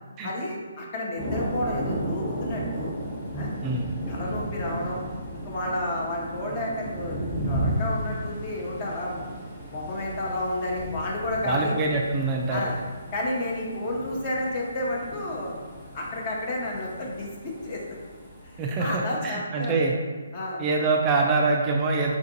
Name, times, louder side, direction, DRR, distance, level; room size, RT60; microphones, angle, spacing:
voice 1, 0.2-2.9 3.3-3.5 4.1-5.0 5.3-9.3 9.7-12.0 12.5-12.7 13.1-15.6 15.9-17.8 18.8-19.7 20.3-20.6, left 1 dB, 30° left, -3 dB, 0.7 m, -31 dB
Thunder, 1.2-19.0, right 1 dB, 5° left, 0.9 m, -34 dB
voice 2, 11.4-12.7 18.6-19.9 20.6-22.1, right 3 dB, 20° right, -1 dB, 0.3 m, -24 dB
4.4 x 2.4 x 2.7 m, 1.5 s
figure-of-eight pair, 145°, 0 cm